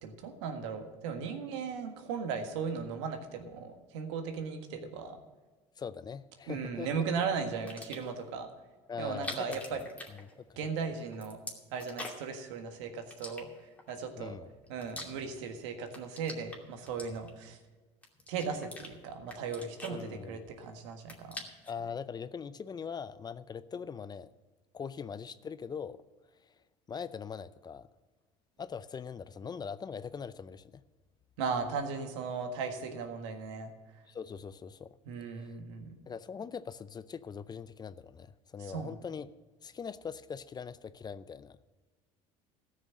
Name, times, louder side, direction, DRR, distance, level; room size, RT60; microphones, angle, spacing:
voice 1, 0.0-5.2 6.5-8.5 9.0-9.8 10.6-11.4 11.7-13.5 13.9-14.3 14.7-17.6 18.3-21.4 31.4-33.7 35.1-36.0 38.6-38.9, right 5 dB, 80° right, 6 dB, 1.6 m, -37 dB
voice 2, 5.8-6.9 8.9-9.8 10.2-10.3 14.2-14.5 19.9-20.4 21.7-24.3 24.7-26.0 26.9-27.9 28.6-30.8 34.1-34.9 35.2-35.5 36.1-39.3 39.6-41.6, left 6 dB, 30° left, 15 dB, 0.5 m, -41 dB
sound 1, 7.6-8.2 9.0-10.7 11.0-12.4 13.1-13.9 14.4-15.5 15.8-17.5 18.0-18.9 19.3-20.6 20.9-21.8, left 1 dB, 10° left, 2.5 m, -45 dB
14.0 x 6.5 x 7.6 m, 1.3 s
hypercardioid pair, 80°, 15 cm